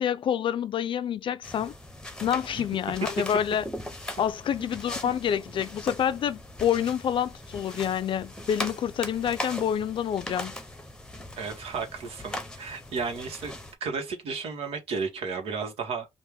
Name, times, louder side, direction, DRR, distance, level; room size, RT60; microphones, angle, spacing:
voice 1, 0.0-1.7 2.2-3.6 4.2-10.5, left 9 dB, 60° left, 0.5 m, -27 dB
sound 1, 1.4-13.7, left 1 dB, 10° left, 0.8 m, -39 dB
voice 2, 11.4-13.5 13.8-16.1, right 5 dB, 85° right, 1.5 m, -33 dB
5.3 x 2.6 x 3.5 m
wide cardioid pair, 145°, 10 cm